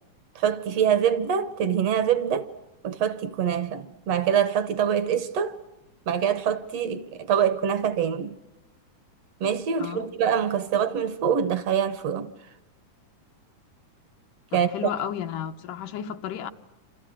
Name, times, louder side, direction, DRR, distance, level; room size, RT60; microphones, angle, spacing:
voice 1, 0.4-2.5 2.8-5.6 6.1-8.4 9.4-12.3 14.5-14.7, right 8 dB, 65° right, 1.9 m, -25 dB
voice 2, 9.8-10.1 14.5-16.5, left 9 dB, 85° left, 2.8 m, -33 dB
29.0 x 27.5 x 6.3 m
omnidirectional pair, 3.5 m